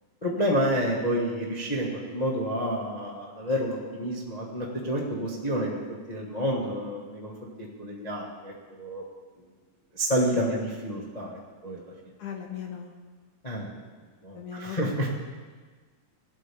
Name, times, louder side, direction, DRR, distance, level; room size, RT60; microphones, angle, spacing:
voice 1, 0.2-5.8 6.1-7.3 7.8-9.0 9.9-11.4 11.6-11.8 13.4-13.8 14.2-15.1, equal, 30° left, -4 dB, 0.6 m, -29 dB
voice 2, 12.2-13.0 14.4-14.9, left 8 dB, 65° left, 2 dB, 2.4 m, -37 dB
17.5 x 13.0 x 3.6 m, 1.4 s
omnidirectional pair, 4.0 m